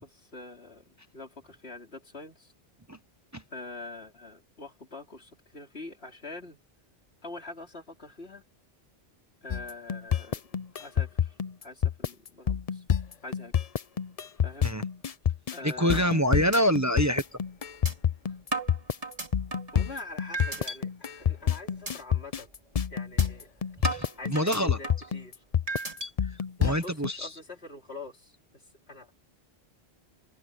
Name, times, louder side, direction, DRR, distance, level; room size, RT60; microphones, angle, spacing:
voice 1, 0.0-2.5 3.5-6.6 7.2-8.4 9.4-10.4 10.8-11.4 11.6-12.8 13.2-13.5 14.4-14.8 15.5-16.4 18.3-18.4 19.7-22.5 22.9-23.5 24.2-25.4 26.6-29.1, left 2 dB, 80° left, 4.2 m, -44 dB
sound 1, 9.5-27.1, left 8 dB, 45° left, 0.6 m, -27 dB
voice 2, 15.6-17.2 23.8-24.8 26.6-27.3, equal, 15° right, 1.0 m, -26 dB
sound 2, 16.2-16.3 16.5-16.6 17.0-17.1 17.9-18.0 18.5-19.8 20.3-20.8 21.2-21.4 21.9-22.0 22.4-22.6 23.2-23.3 23.8-25.1 25.7-26.1, right 2 dB, 35° right, 2.9 m, -34 dB
omnidirectional pair, 1.1 m